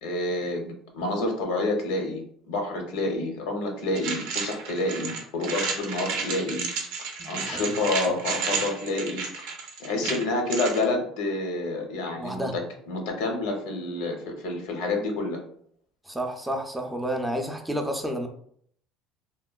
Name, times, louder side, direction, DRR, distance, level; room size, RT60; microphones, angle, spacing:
voice 1, 0.0-6.7 7.0-9.2 9.8-12.6 12.9-15.4, left 2 dB, 85° left, 3 dB, 0.7 m, -28 dB
sound 1, 3.9-10.8, right 5 dB, 85° right, 0.5 m, -32 dB
voice 2, 7.2-7.7 12.2-12.5 16.1-18.3, right 1 dB, 5° right, 4 dB, 0.4 m, -30 dB
2.9 x 2.2 x 2.3 m, 0.64 s
cardioid pair, 115°, 0 cm